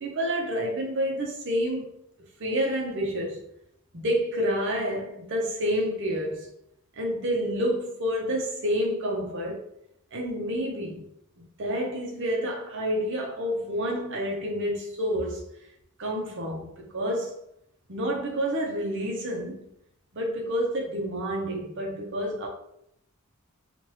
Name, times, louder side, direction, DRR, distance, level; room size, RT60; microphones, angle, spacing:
voice 1, 0.0-1.9 2.4-3.4 3.9-6.5 7.0-9.6 10.1-11.1 11.4-15.5 16.0-17.4 17.9-19.7 20.1-22.5, equal, 60° right, 0.8 m, -29 dB
3.0 x 2.5 x 3.2 m
head